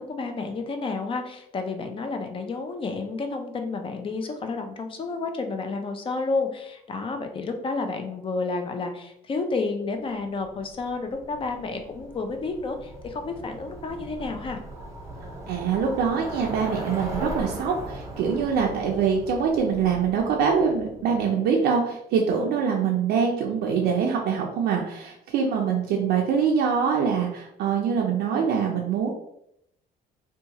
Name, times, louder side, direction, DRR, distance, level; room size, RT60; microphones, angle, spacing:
voice 1, 0.0-14.6, left 3 dB, 30° left, 6 dB, 0.4 m, -30 dB
Bicycle, 10.4-21.3, right 1 dB, 15° right, 0.8 m, -38 dB
voice 2, 15.5-29.1, right 6 dB, 75° right, -1 dB, 0.4 m, -24 dB
2.7 x 2.3 x 2.8 m, 0.76 s
cardioid pair, 110°, 17 cm